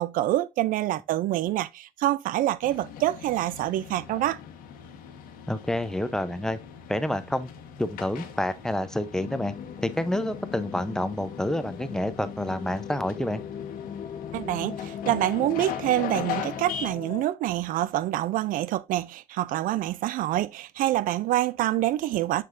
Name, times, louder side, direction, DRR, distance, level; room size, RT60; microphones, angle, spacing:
voice 1, 0.0-4.4 14.3-22.4, right 14 dB, 75° right, 0.4 m, -26 dB
sound 1, 2.6-16.9, left 8 dB, 90° left, 1.3 m, -40 dB
voice 2, 5.5-6.6 6.9-7.5 7.8-9.5 9.8-13.4, left 1 dB, 5° left, 0.7 m, -28 dB
sound 2, 9.2-17.2, left 8 dB, 50° left, 0.8 m, -38 dB
6.8 x 6.4 x 2.5 m
cardioid pair, 140°, 14 cm